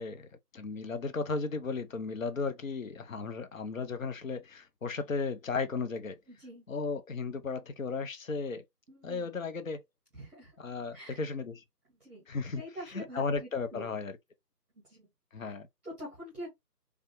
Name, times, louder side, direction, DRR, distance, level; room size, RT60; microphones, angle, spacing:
voice 1, 0.0-6.2 6.7-8.6 9.0-9.8 10.6-11.6 12.3-14.2 15.3-15.7, left 4 dB, 55° left, 0.6 m, -35 dB
voice 2, 6.3-6.6 8.9-9.3 10.1-10.5 10.9-11.2 12.0-12.3 12.5-13.9 14.7-15.1 15.3-15.5 15.8-16.5, equal, 5° left, 1.2 m, -45 dB
3.3 x 2.5 x 3.1 m
figure-of-eight pair, 160°, 49 cm